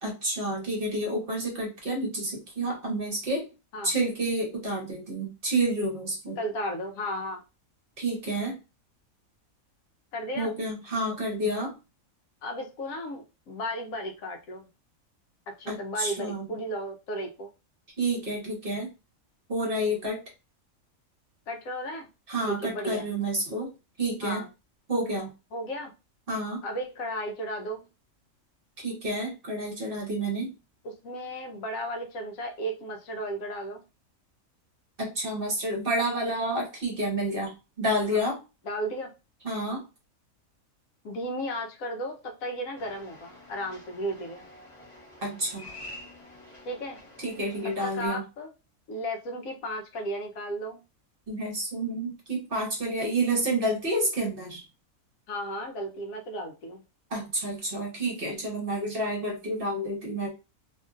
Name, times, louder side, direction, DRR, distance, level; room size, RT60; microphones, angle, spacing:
voice 1, 0.0-3.5 3.8-6.4 8.0-8.6 10.4-11.7 15.7-16.5 18.0-18.9 19.5-20.2 22.3-23.7 24.0-24.4 24.9-25.3 26.3-26.6 28.8-30.5 35.0-38.4 39.4-39.8 45.2-45.7 47.2-48.2 51.3-54.6 57.1-60.3, right 1 dB, 45° right, 1 dB, 1.0 m, -29 dB
voice 2, 6.4-7.4 10.1-10.5 12.4-14.7 15.6-17.5 21.5-22.1 22.4-23.1 24.2-24.5 25.5-25.9 26.6-27.9 30.8-33.8 38.1-38.2 38.7-39.1 41.0-44.4 46.7-47.0 47.8-48.5 48.9-50.8 55.3-56.8, equal, 75° left, 3 dB, 1.1 m, -34 dB
sound 1, 42.8-48.1, left 1 dB, 30° left, 0.7 m, -48 dB
2.9 x 2.6 x 2.4 m, 0.28 s
omnidirectional pair, 1.5 m